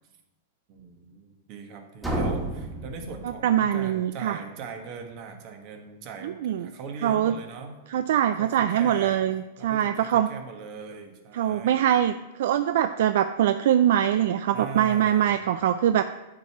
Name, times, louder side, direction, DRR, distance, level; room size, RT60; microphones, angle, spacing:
voice 1, 0.7-7.8 8.4-9.2 9.6-11.8 14.5-15.6, right 5 dB, 45° right, 4 dB, 1.5 m, -40 dB
sound 1, 2.0-3.9, right 1 dB, 5° right, 1.7 m, -31 dB
voice 2, 3.4-4.4 6.2-6.7 7.0-7.4 7.9-10.3 11.3-12.1 12.4-16.0, right 10 dB, 70° right, 10 dB, 0.3 m, -23 dB
9.3 x 4.7 x 5.8 m, 1.0 s
hypercardioid pair, 130°, 0 cm